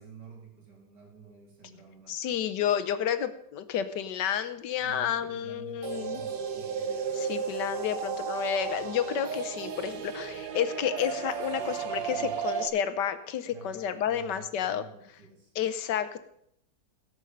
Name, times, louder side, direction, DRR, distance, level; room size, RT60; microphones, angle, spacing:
voice 1, 0.0-2.4 4.8-7.2 11.5-12.4 13.4-15.5, right 6 dB, 70° right, -2 dB, 3.6 m, -50 dB
voice 2, 2.1-6.3 7.3-14.8 15.6-16.2, left 9 dB, 75° left, 11 dB, 1.4 m, -30 dB
sound 1, 5.8-12.7, right 7 dB, 85° right, 1.8 m, -34 dB
17.5 x 6.3 x 5.3 m, 0.72 s
omnidirectional pair, 1.9 m